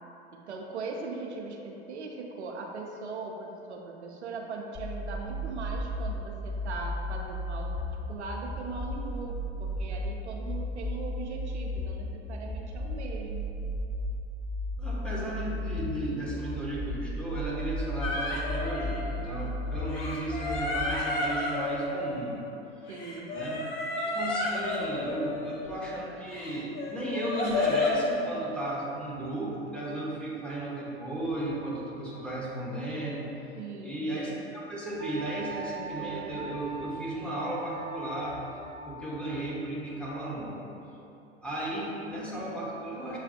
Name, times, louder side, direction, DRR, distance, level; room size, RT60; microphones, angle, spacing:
voice 1, 0.3-13.4 22.9-23.4 33.6-34.1, right 3 dB, 90° right, 0 dB, 0.5 m, -40 dB
sound 1, 4.7-20.7, left 1 dB, 30° left, 0.9 m, -34 dB
voice 2, 14.8-22.4 22.8-22.9 23.3-23.7 24.0-33.2 33.8-38.4 38.8-40.6 41.4-43.2, right 1 dB, 5° left, -7 dB, 1.0 m, -35 dB
sound 2, 18.0-19.5 19.9-22.6 22.9-25.9 26.3-28.1, left 2 dB, 65° left, 0.8 m, -32 dB
Wind instrument woodwind instrument, 35.0-39.1, right 4 dB, 40° right, 0.6 m, -42 dB
6.8 x 2.3 x 2.6 m, 2.9 s
hypercardioid pair, 90°, 33 cm